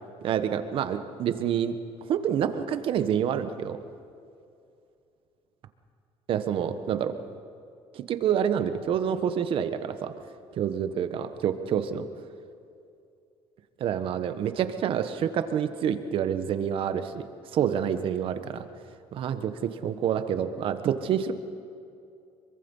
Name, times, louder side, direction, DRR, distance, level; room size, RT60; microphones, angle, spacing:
voice 1, 0.2-1.7 2.1-3.8 6.3-7.1 7.9-10.1 10.6-12.1 13.8-17.2 17.5-18.6 19.1-21.3, right 8 dB, 55° right, 9 dB, 1.4 m, -27 dB
25.5 x 23.5 x 5.6 m, 2.5 s
cardioid pair, 125°, 11 cm